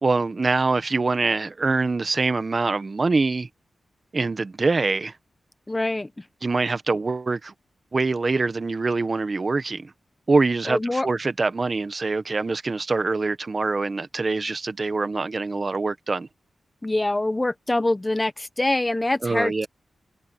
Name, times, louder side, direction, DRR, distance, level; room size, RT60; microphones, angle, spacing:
voice 1, 0.0-3.5 4.1-5.1 6.4-7.5 7.9-9.9 10.3-16.3 19.2-19.7, right 3 dB, 40° right, 1.2 m, -24 dB
voice 2, 5.7-6.3 10.6-11.1 16.8-19.7, left 2 dB, 20° left, 1.1 m, -24 dB
cardioid pair, 65°, 0 cm